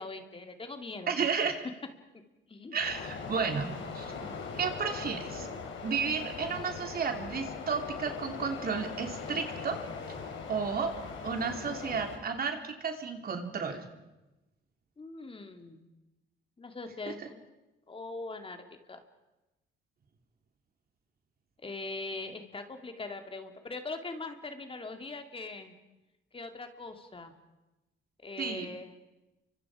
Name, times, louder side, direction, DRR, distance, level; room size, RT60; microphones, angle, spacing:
voice 1, 0.0-1.5 2.5-2.8 15.0-15.9 16.6-17.4 17.9-19.0 21.6-25.7 26.3-27.3 28.2-29.0, left 3 dB, 25° left, 6 dB, 2.5 m, -41 dB
voice 2, 1.1-1.6 2.7-4.3 4.5-5.5 5.8-9.8 10.1-10.2 10.5-10.9 11.2-13.8 28.4-28.7, right 5 dB, 50° right, 4 dB, 3.3 m, -32 dB
sound 1, 2.8-12.2, left 5 dB, 80° left, 4.3 m, -40 dB
30.0 x 25.0 x 5.0 m, 1.0 s
cardioid pair, 90°, 20 cm